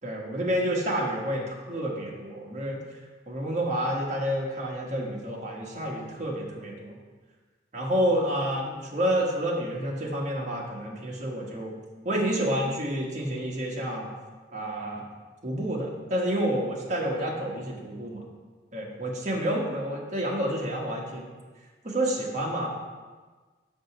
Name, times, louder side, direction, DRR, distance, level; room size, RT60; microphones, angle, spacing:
voice 1, 0.0-2.8 3.3-7.0 7.7-11.7 12.0-14.1 14.5-15.0 15.4-18.2 18.7-21.3 21.8-22.7, equal, 40° right, -2 dB, 1.5 m, -29 dB
6.8 x 5.3 x 4.9 m, 1.4 s
head